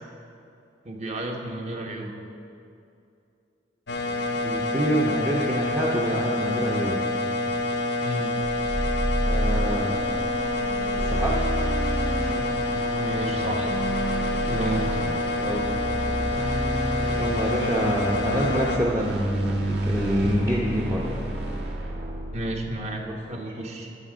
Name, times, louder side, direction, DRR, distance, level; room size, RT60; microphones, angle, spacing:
voice 1, 0.8-2.1 8.0-8.3 13.0-13.7 14.5-14.9 22.3-23.9, right 1 dB, 35° right, 2 dB, 1.1 m, -32 dB
sound 1, 3.9-18.8, left 2 dB, 75° left, 0.9 m, -27 dB
voice 2, 4.3-7.1 9.2-10.0 11.1-11.5 15.4-15.7 17.2-21.2 23.3-23.5, equal, 15° right, -4 dB, 0.8 m, -26 dB
sound 2, 8.4-23.0, right 1 dB, 60° right, 1.6 m, -30 dB
14.0 x 6.4 x 5.0 m, 2.6 s
head